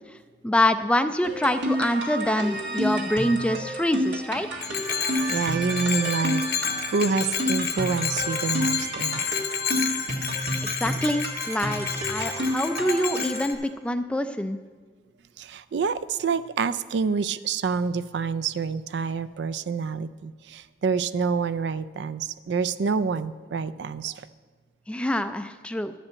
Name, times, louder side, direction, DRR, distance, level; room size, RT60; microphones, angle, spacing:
voice 1, 0.4-4.5 10.6-14.6 24.9-25.9, left 1 dB, 5° left, 10 dB, 0.3 m, -25 dB
sound 1, 1.2-13.5, equal, 90° right, 1.8 m, -30 dB
Bell, 4.6-13.5, left 7 dB, 60° left, 0.9 m, -30 dB
voice 2, 5.3-6.4 6.9-9.3 15.4-24.3, right 5 dB, 70° right, 14 dB, 0.4 m, -27 dB
11.5 x 5.2 x 8.4 m, 1.5 s
head